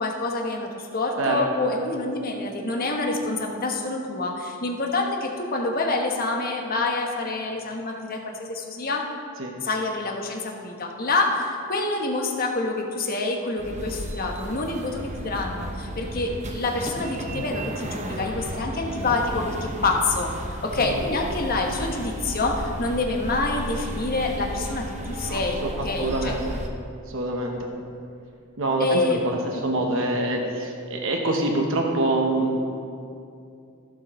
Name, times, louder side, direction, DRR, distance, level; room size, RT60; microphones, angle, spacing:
voice 1, 0.0-9.0 9.6-26.3 28.8-29.2 29.5-29.6, left 3 dB, 45° left, 1 dB, 1.2 m, -27 dB
voice 2, 1.2-1.8 9.4-9.6 20.8-20.9 25.2-25.7 26.0-26.6 27.1-27.7 28.6-29.4 29.6-32.6, right 2 dB, 65° right, 1 dB, 1.0 m, -25 dB
sound 1, 13.6-26.7, right 1 dB, 35° right, 0.8 m, -34 dB
15.0 x 7.2 x 3.2 m, 2.5 s
head